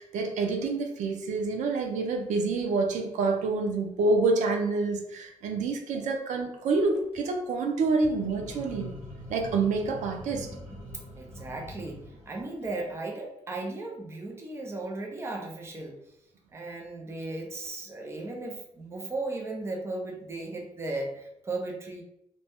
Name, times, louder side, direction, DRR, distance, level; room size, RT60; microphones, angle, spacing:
voice 1, 0.0-9.0 9.3-10.5, right 3 dB, 85° right, 4 dB, 0.5 m, -27 dB
sound 1, 6.8-7.2 8.0-13.0, equal, 55° right, 1.3 m, -44 dB
voice 2, 11.2-16.0 16.5-22.0, right 2 dB, 20° right, 1 dB, 0.5 m, -36 dB
2.6 x 2.1 x 3.3 m, 0.80 s
wide cardioid pair, 150°, 12 cm